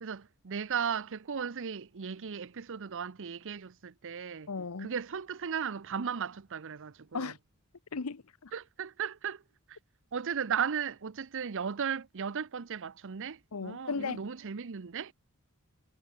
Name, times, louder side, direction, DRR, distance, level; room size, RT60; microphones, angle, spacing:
voice 1, 0.0-4.5 4.8-7.3 8.5-9.4 10.1-13.4 13.6-15.1, right 7 dB, 60° right, 0.7 m, -36 dB
voice 2, 4.5-4.9 7.1-7.4 7.9-8.5 13.5-14.3, left 4 dB, 70° left, 0.8 m, -36 dB
head